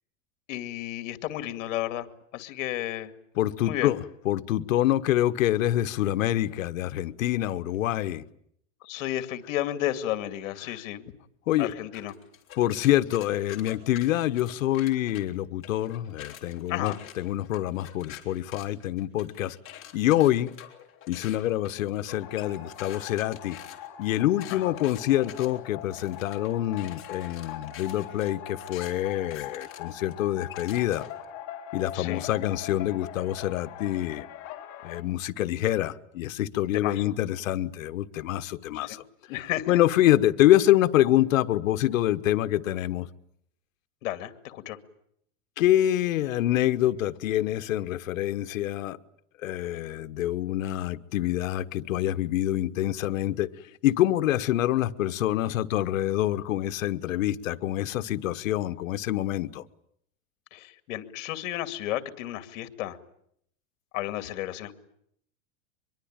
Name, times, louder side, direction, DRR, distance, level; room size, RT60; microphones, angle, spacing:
voice 1, 0.5-2.1 2.3-3.1 3.6-3.9 8.8-11.1 11.6-12.1 16.7-17.0 24.5-24.7 31.9-32.3 36.7-37.1 38.7-39.0 39.3-39.8 44.0-44.8 60.5-63.0 63.9-64.7, left 14 dB, 65° left, 2.4 m, -32 dB
voice 2, 3.4-8.2 10.6-10.7 11.5-11.8 12.6-19.6 19.9-20.5 21.1-23.6 24.0-31.0 31.7-34.3 34.8-39.0 39.7-43.1 45.6-49.0 49.4-53.5 53.8-59.6, left 13 dB, 85° left, 1.3 m, -26 dB
sound 1, 11.9-15.2 15.6-31.2, left 11 dB, 30° left, 4.2 m, -47 dB
sound 2, 22.1-35.0, left 10 dB, 50° left, 4.5 m, -42 dB
24.5 x 22.5 x 8.9 m
supercardioid pair, 145°, 39 cm